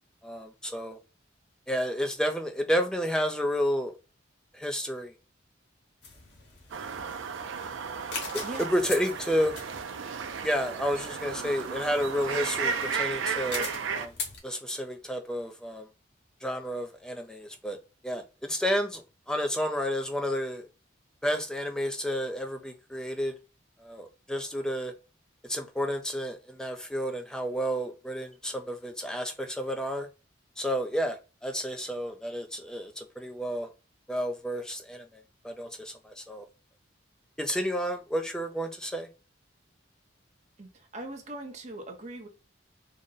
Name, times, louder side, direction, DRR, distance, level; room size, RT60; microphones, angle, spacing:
voice 1, 0.2-1.0 1.7-3.9 4.5-5.1 8.6-9.5 10.4-13.7 13.9-14.1 14.4-15.9 16.4-17.8 18.0-20.7 21.2-23.4 23.8-24.9 25.4-30.1 30.6-33.7 34.1-36.5 37.4-39.1, equal, 5° left, 0.3 m, -31 dB
sound 1, 6.0-14.4, left 3 dB, 55° left, 1.0 m, -42 dB
sound 2, 6.7-14.1, right 6 dB, 80° right, 0.4 m, -34 dB
voice 2, 40.6-42.3, right 1 dB, 35° right, 0.7 m, -40 dB
3.8 x 2.1 x 3.7 m
head